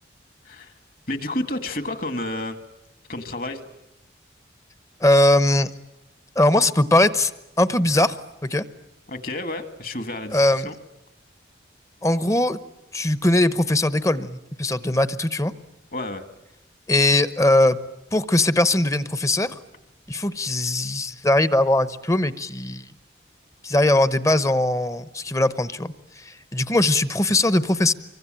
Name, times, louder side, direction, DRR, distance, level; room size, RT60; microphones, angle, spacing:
voice 1, 1.1-2.6 3.1-3.6 9.1-10.7 15.9-16.2, left 1 dB, 50° left, 10 dB, 1.9 m, -30 dB
voice 2, 5.0-5.7 6.4-7.3 7.6-8.2 8.4-8.6 10.3-10.7 12.0-12.6 12.9-15.5 16.9-17.8 18.1-19.6 20.1-22.8 23.6-27.9, left 1 dB, 15° left, 14 dB, 0.9 m, -20 dB
25.5 x 24.0 x 9.0 m, 0.95 s
head